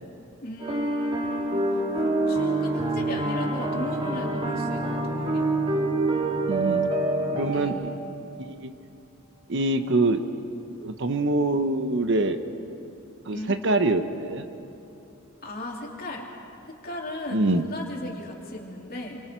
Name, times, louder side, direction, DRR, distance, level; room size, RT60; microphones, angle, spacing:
voice 1, 0.4-1.6 2.0-5.5 7.5-7.9 13.3-13.6 15.4-16.3 16.7-19.2, left 1 dB, 45° left, -1 dB, 3.0 m, -36 dB
sound 1, 0.6-7.7, right 2 dB, 25° right, 1.8 m, -26 dB
voice 2, 6.5-6.9 7.3-7.8 8.4-8.7 9.5-10.2 10.8-12.4 13.2-14.4 17.3-17.6, right 2 dB, 55° right, 8 dB, 1.0 m, -24 dB
28.0 x 24.5 x 4.6 m, 2.9 s
head